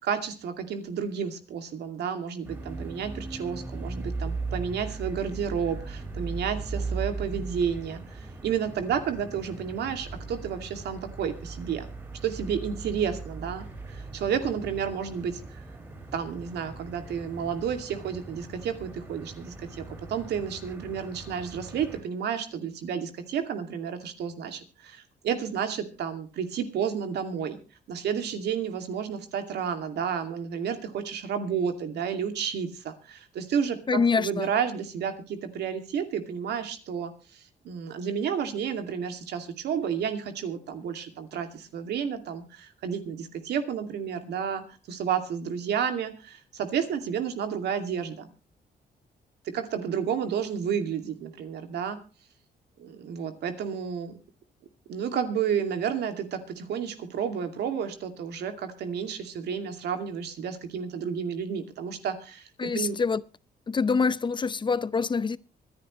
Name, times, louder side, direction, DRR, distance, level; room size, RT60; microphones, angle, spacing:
voice 1, 0.0-11.9 12.2-15.4 16.1-19.8 20.1-27.6 27.9-44.6 44.9-48.3 49.5-52.0 52.8-54.2 54.9-63.0, right 7 dB, 90° right, 2.4 m, -31 dB
sound 1, 2.4-22.0, right 3 dB, 15° right, 5.5 m, -38 dB
voice 2, 33.9-34.5 62.6-63.2 63.7-65.4, left 5 dB, 30° left, 0.7 m, -25 dB
25.0 x 10.0 x 3.1 m
cardioid pair, 120°, 17 cm